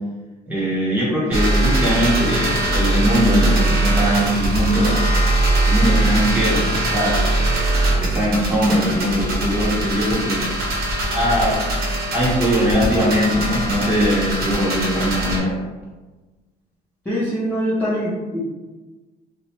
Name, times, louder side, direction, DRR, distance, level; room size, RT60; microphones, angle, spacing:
voice 1, 0.5-5.1 5.6-7.1 8.0-10.7 11.1-11.6 12.1-15.5, equal, 10° right, -8 dB, 1.2 m, -20 dB
sound 1, 1.3-15.4, right 1 dB, 65° right, 0.8 m, -21 dB
voice 2, 17.1-18.4, equal, 10° left, -10 dB, 0.7 m, -23 dB
2.5 x 2.1 x 3.0 m, 1.2 s
cardioid pair, 110°, 17 cm